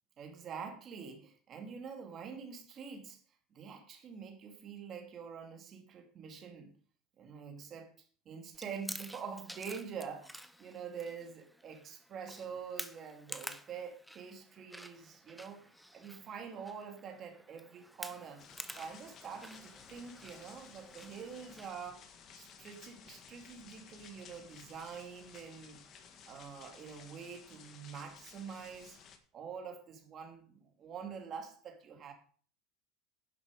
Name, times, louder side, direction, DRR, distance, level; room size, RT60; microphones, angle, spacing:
voice 1, 0.2-3.2 3.5-6.7 7.2-7.9 8.3-18.4 18.8-22.1 22.3-25.8 26.3-29.0 29.3-32.1, right 6 dB, 25° right, 2.5 m, -46 dB
Chewing mastication, 8.5-21.7, equal, ahead, 0.6 m, -50 dB
sound 1, 18.4-29.2, left 7 dB, 30° left, 1.4 m, -56 dB
11.5 x 10.5 x 4.8 m
cardioid pair, 175°, 0 cm